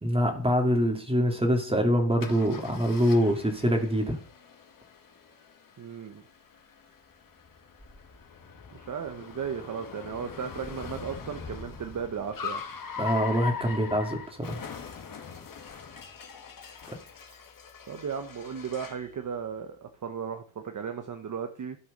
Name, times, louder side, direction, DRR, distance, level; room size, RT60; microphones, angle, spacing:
voice 1, 0.0-4.2 13.0-14.6 16.9-17.0, equal, 10° right, 3 dB, 2.2 m, -25 dB
Car, 2.2-19.1, left 6 dB, 45° left, 2.0 m, -42 dB
voice 2, 5.8-6.2 8.7-12.6 17.9-21.8, right 7 dB, 40° right, 7 dB, 1.0 m, -35 dB
sound 1, 7.8-8.8 9.3-9.4 10.0-12.5, left 2 dB, 15° left, 2.8 m, -46 dB
12.5 x 6.3 x 6.6 m, 0.40 s
cardioid pair, 130°, 47 cm